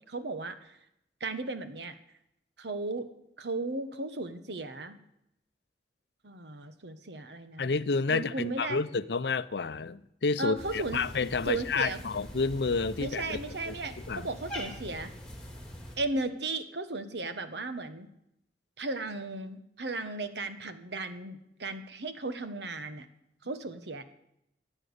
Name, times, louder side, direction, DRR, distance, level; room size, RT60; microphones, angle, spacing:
voice 1, 0.1-0.8 1.2-2.0 2.6-3.1 3.4-5.0 6.2-7.7 8.1-8.8 10.4-11.0 11.5-12.0 13.0-15.1 16.0-18.1 18.8-23.1 23.4-24.0, right 2 dB, 80° right, 1.2 m, -35 dB
voice 2, 7.6-13.4 13.7-14.3, left 4 dB, 75° left, 0.6 m, -30 dB
Cat, 10.5-16.0, equal, 5° left, 3.3 m, -43 dB
16.5 x 8.8 x 8.1 m
head